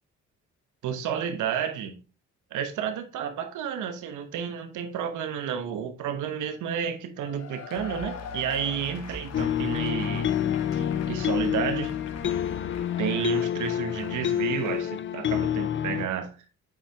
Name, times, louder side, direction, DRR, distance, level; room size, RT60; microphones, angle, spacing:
voice 1, 0.8-2.0 2.5-10.3 10.7-11.9 13.0-16.3, right 8 dB, 80° right, 1.1 m, -31 dB
Cheering / Applause / Crowd, 7.2-14.9, left 6 dB, 55° left, 1.2 m, -45 dB
sound 1, 7.8-12.8, left 4 dB, 20° right, 1.5 m, -43 dB
sound 2, 9.3-16.1, left 10 dB, 40° left, 0.5 m, -28 dB
7.2 x 4.6 x 3.4 m
cardioid pair, 90°, 30 cm